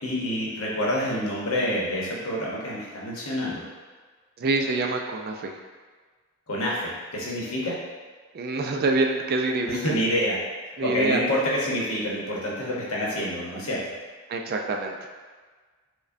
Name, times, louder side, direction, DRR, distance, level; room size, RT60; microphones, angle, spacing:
voice 1, 0.0-3.7 6.5-7.7 9.7-10.4 10.6-13.8, equal, 85° left, -5 dB, 0.9 m, -27 dB
voice 2, 4.4-5.6 8.3-9.8 10.8-11.2 14.3-15.1, right 3 dB, 45° right, 2 dB, 0.3 m, -26 dB
4.8 x 2.2 x 2.5 m, 1.5 s
head